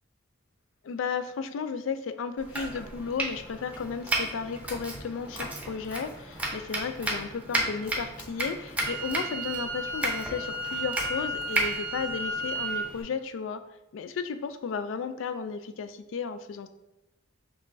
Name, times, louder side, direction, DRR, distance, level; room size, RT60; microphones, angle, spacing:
voice 1, 0.8-13.6 13.9-16.7, left 5 dB, 70° left, 11 dB, 0.3 m, -34 dB
Domestic sounds home sounds, 2.4-13.0, right 1 dB, 5° right, 0.6 m, -34 dB
Wind instrument woodwind instrument, 8.8-12.8, right 2 dB, 50° right, 0.5 m, -34 dB
5.3 x 3.0 x 2.6 m, 0.93 s
head